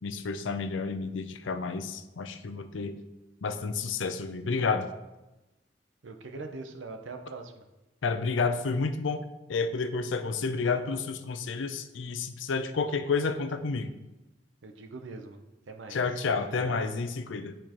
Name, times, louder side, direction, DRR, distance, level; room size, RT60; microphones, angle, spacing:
voice 1, 0.0-3.0 3.4-4.9 8.0-13.9 15.9-17.6, left 4 dB, 85° left, 9 dB, 0.5 m, -30 dB
voice 2, 6.0-7.6 14.6-16.0 16.4-16.9, right 3 dB, 90° right, 6 dB, 0.7 m, -42 dB
10.0 x 4.4 x 3.0 m, 1.0 s
head